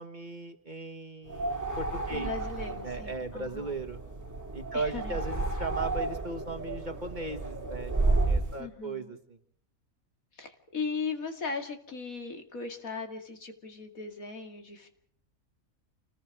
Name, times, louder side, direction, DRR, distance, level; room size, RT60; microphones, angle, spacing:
voice 1, 0.0-2.3 2.7-4.0 4.5-7.9 8.3-9.4, right 2 dB, 35° right, 6 dB, 1.7 m, -37 dB
sound 1, 1.3-8.6, right 2 dB, 10° right, 2.2 m, -32 dB
voice 2, 2.1-3.8 4.7-5.2 8.6-9.1 10.3-14.9, left 4 dB, 75° left, 5 dB, 2.9 m, -38 dB
29.0 x 20.5 x 4.8 m, 0.64 s
omnidirectional pair, 1.5 m